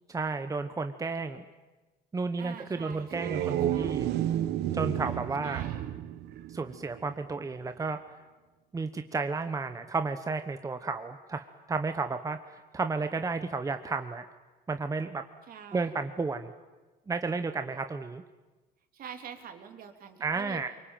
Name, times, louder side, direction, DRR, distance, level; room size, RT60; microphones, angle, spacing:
voice 1, 0.1-1.5 2.1-4.1 4.7-5.6 6.5-8.0 8.7-14.2 14.7-15.2 15.7-16.5 17.1-18.2 20.2-20.7, right 4 dB, 20° right, 8 dB, 1.0 m, -32 dB
voice 2, 2.4-4.1 5.4-5.9 15.5-16.0 18.9-20.6, right 7 dB, 60° right, 5 dB, 3.2 m, -45 dB
sound 1, 2.9-7.1, right 12 dB, 80° right, 1.1 m, -31 dB
24.5 x 23.0 x 9.1 m, 1.2 s
cardioid pair, 110°, 17 cm